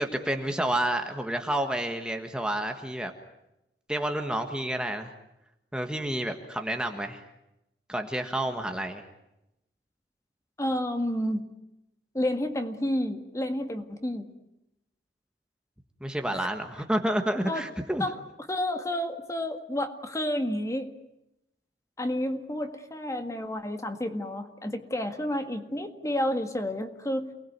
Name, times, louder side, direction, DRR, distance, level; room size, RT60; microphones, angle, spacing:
voice 1, 0.0-3.1 3.9-5.1 5.7-7.2 7.9-9.0 16.0-18.0, right 1 dB, 5° right, 5 dB, 1.5 m, -29 dB
voice 2, 10.6-11.4 12.1-14.2 16.3-16.5 17.5-17.6 18.0-18.2 18.5-20.9 22.0-27.3, left 1 dB, 20° left, 6 dB, 1.9 m, -30 dB
28.5 x 20.0 x 9.5 m, 0.90 s
head